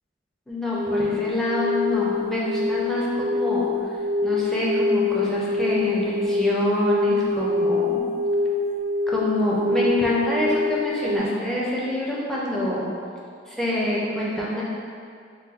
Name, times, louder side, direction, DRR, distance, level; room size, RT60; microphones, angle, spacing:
voice 1, 0.5-3.7 4.2-8.0 9.1-12.9 13.5-14.6, left 1 dB, 5° left, -7 dB, 0.4 m, -26 dB
sound 1, 0.7-11.2, left 3 dB, 55° right, 0.4 m, -25 dB
3.9 x 2.2 x 2.4 m, 2.4 s
head